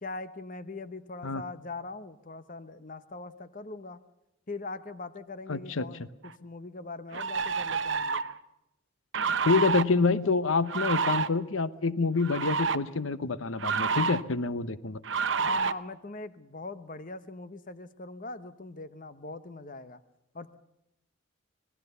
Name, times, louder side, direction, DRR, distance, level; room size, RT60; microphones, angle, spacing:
voice 1, 0.0-4.0 4.5-8.2 15.4-20.0 20.3-20.5, left 3 dB, 40° left, 12 dB, 0.9 m, -41 dB
voice 2, 5.5-5.9 9.4-15.0, left 4 dB, 75° left, 14 dB, 0.9 m, -27 dB
sound 1, 6.2-6.3 7.1-8.3 9.1-9.8 10.7-11.3 12.2-12.8 13.6-14.2 15.0-15.7, right 5 dB, 65° right, 0.9 m, -28 dB
26.0 x 19.0 x 6.9 m, 0.90 s
head